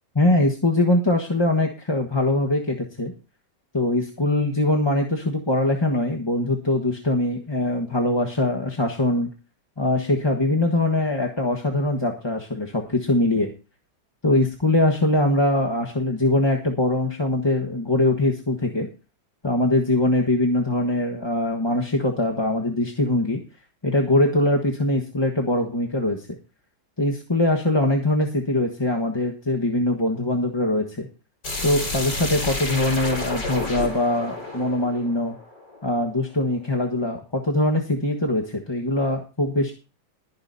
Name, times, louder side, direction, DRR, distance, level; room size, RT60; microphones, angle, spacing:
voice 1, 0.1-3.1 3.7-9.3 9.8-13.5 14.2-18.9 19.4-23.4 23.8-26.3 27.0-31.1 31.6-35.4 35.8-39.7, left 1 dB, 15° left, 1 dB, 1.2 m, -22 dB
sound 1, 31.4-36.2, left 2 dB, 90° left, 5.7 m, -30 dB
22.0 x 9.9 x 2.7 m, 0.32 s
omnidirectional pair, 1.8 m